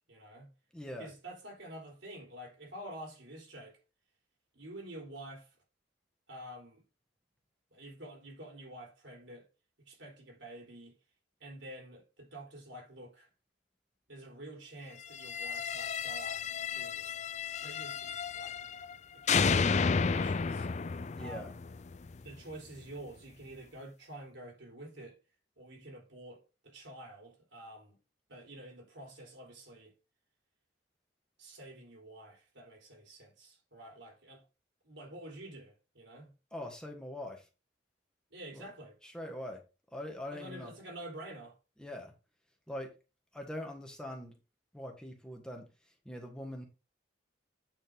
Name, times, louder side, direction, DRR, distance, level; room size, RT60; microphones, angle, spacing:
voice 1, 0.1-0.5 0.9-3.8 4.5-5.6 6.3-6.8 7.7-9.5 9.8-10.9 11.4-13.3 14.1-17.2 17.6-18.7 19.1-20.7 21.2-21.6 22.2-25.2 25.6-28.0 28.3-29.9 31.4-34.4 34.8-36.3 38.3-39.0 40.3-41.6, right 1 dB, 85° right, 3.7 m, -48 dB
voice 2, 0.7-1.1 21.2-21.5 36.5-37.5 38.5-38.7 39.0-39.6 39.9-40.7 41.8-42.1 42.7-42.9 43.3-44.4 44.7-45.7 46.0-46.7, left 1 dB, 5° left, 1.5 m, -42 dB
sound 1, 15.1-19.0 19.3-22.3, left 5 dB, 40° left, 0.4 m, -32 dB
8.9 x 5.3 x 3.8 m
head